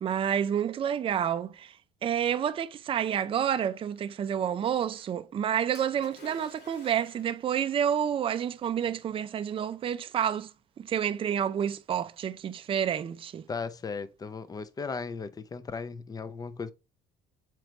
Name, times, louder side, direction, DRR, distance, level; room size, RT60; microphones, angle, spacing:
voice 1, 0.0-1.7 2.0-10.5 10.8-13.4, right 9 dB, 30° right, 0.4 m, -29 dB
Splash splatter, 5.7-7.5 8.5-8.6, left 3 dB, 85° left, 2.5 m, -51 dB
voice 2, 13.5-16.7, left 5 dB, 20° left, 0.5 m, -36 dB
4.5 x 3.9 x 3.0 m
cardioid pair, 110°, 17 cm